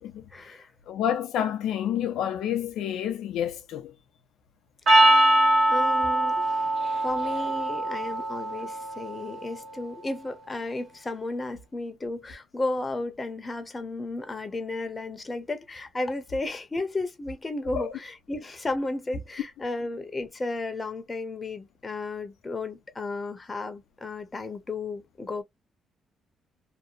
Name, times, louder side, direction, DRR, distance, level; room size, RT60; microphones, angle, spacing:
voice 1, 0.3-0.7 4.9-5.4 5.7-6.5 7.0-25.4, left 2 dB, 25° left, 0.7 m, -33 dB
voice 2, 0.9-3.9 17.8-17.9, left 10 dB, 85° left, 0.6 m, -29 dB
Percussion, 4.9-9.4, right 1 dB, 55° right, 1.4 m, -22 dB
2.8 x 2.1 x 2.4 m
cardioid pair, 90°, 0 cm